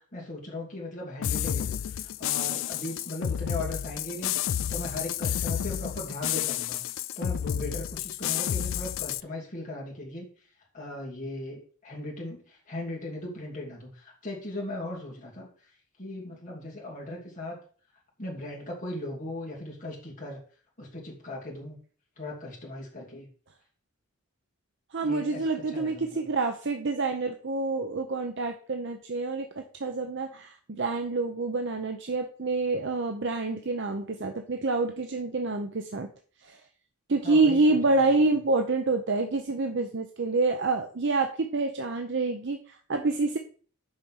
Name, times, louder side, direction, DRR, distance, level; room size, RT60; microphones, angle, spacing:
voice 1, 0.0-4.4 4.7-6.8 7.2-10.3 10.7-15.5 16.0-17.6 18.2-20.4 20.8-21.8 22.2-23.3 25.0-26.2 37.2-38.1, left 1 dB, 35° left, -2 dB, 2.7 m, -38 dB
sound 1, 1.2-9.2, left 10 dB, 55° left, 0.3 m, -30 dB
voice 2, 24.9-36.1 36.4-36.6 37.1-43.4, right 3 dB, 50° right, 5 dB, 0.7 m, -27 dB
6.5 x 5.2 x 6.3 m, 0.42 s
head